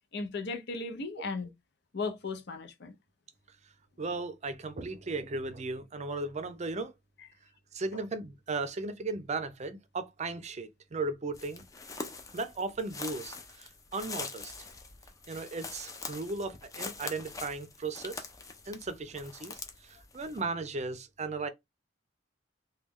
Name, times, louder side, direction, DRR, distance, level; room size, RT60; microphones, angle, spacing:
voice 1, 0.1-1.5 1.9-2.9, left 3 dB, 65° left, 0.7 m, -36 dB
voice 2, 4.0-6.9 7.7-11.6 12.3-14.5 15.3-18.3 18.7-21.5, right 3 dB, 35° right, 0.5 m, -36 dB
sound 1, 11.3-20.4, left 4 dB, 20° left, 0.5 m, -43 dB
3.1 x 2.3 x 3.5 m
head